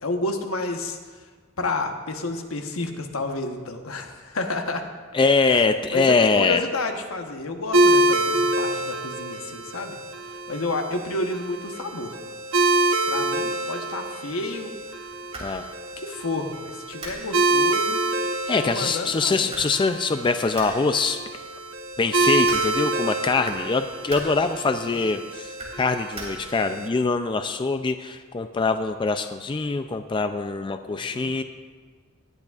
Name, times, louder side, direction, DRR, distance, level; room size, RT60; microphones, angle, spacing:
voice 1, 0.0-1.0 1.6-4.9 5.5-5.6 5.9-10.0 10.5-12.2 13.1-15.1 16.0-18.0 18.6-19.5 24.8-25.0 30.8-31.3, left 2 dB, 80° left, 4 dB, 1.1 m, -30 dB
voice 2, 5.1-6.7 15.4-15.7 18.5-21.2 22.0-31.4, left 4 dB, 25° left, 8 dB, 0.3 m, -23 dB
sound 1, 7.7-26.9, right 2 dB, 75° right, 0.9 m, -26 dB
sound 2, 14.7-26.8, right 1 dB, 30° right, 2.7 m, -44 dB
19.0 x 10.5 x 2.4 m, 1.5 s
head